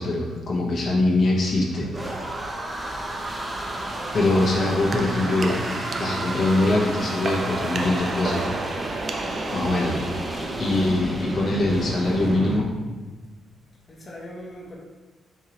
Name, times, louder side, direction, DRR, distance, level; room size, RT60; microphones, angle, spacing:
voice 1, 0.0-2.2 4.1-5.6 6.0-8.5 9.5-9.9 10.3-12.7, left 2 dB, 55° left, -3 dB, 1.0 m, -23 dB
sound 1, 1.4-12.6, right 1 dB, 20° right, 0.7 m, -32 dB
sound 2, 3.4-11.1, right 3 dB, 45° right, 0.4 m, -33 dB
voice 2, 9.2-9.6 10.3-10.6 13.9-14.8, left 1 dB, 35° left, -4 dB, 0.9 m, -41 dB
4.6 x 3.7 x 2.9 m, 1.3 s
cardioid pair, 90°, 0 cm